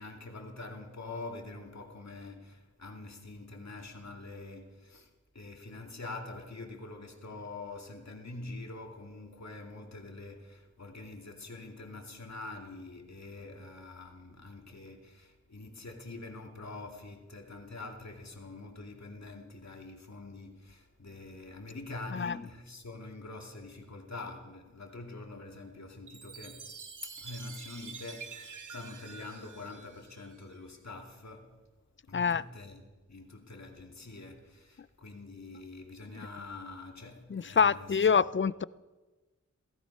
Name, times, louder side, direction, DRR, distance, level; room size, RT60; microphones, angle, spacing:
voice 1, 0.0-5.1 5.3-26.7 27.0-31.6 32.1-38.3, left 2 dB, 65° left, 2.3 m, -45 dB
Chime, 26.1-30.6, right 5 dB, 85° right, 1.0 m, -47 dB
voice 2, 37.3-38.6, left 6 dB, 40° left, 0.4 m, -26 dB
17.0 x 15.5 x 5.5 m
wide cardioid pair, 80°, 30 cm